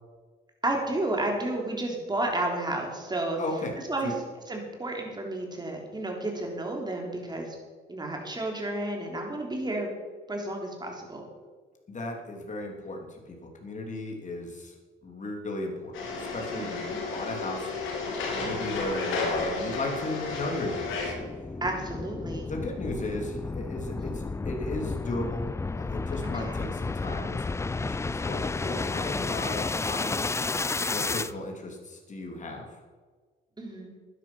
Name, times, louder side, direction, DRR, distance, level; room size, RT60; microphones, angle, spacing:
voice 1, 0.6-3.4 3.9-4.1 4.5-7.6 7.9-9.9 10.3-11.3 16.6-17.0 21.6-22.5 23.9-24.1 26.3-26.6 29.2-29.3 33.6-33.9, right 2 dB, 20° right, 1 dB, 3.6 m, -32 dB
voice 2, 3.4-4.2 11.9-14.7 15.0-17.7 18.2-21.0 22.4-25.5 25.8-30.3 30.9-32.7, left 2 dB, 40° left, 1 dB, 3.1 m, -36 dB
sound 1, 15.9-21.1, left 3 dB, 85° left, 3.0 m, -32 dB
sound 2, 19.8-31.3, left 3 dB, 15° left, 0.4 m, -32 dB
12.0 x 10.5 x 5.7 m, 1.4 s
cardioid pair, 90°, 20 cm